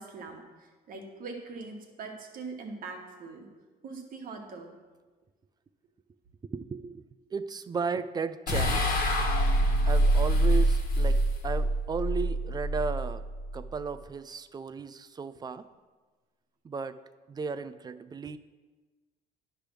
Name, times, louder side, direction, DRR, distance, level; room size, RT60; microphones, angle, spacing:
voice 1, 0.0-3.5 3.8-4.7, right 4 dB, 55° right, 2 dB, 1.4 m, -42 dB
voice 2, 6.5-8.9 9.8-13.2 13.5-15.7 16.6-17.0 17.3-18.4, right 5 dB, 25° right, 13 dB, 0.3 m, -35 dB
sound 1, 8.5-13.8, right 1 dB, 55° left, 1.4 m, -25 dB
10.0 x 3.4 x 6.1 m, 1.3 s
cardioid pair, 110°, 17 cm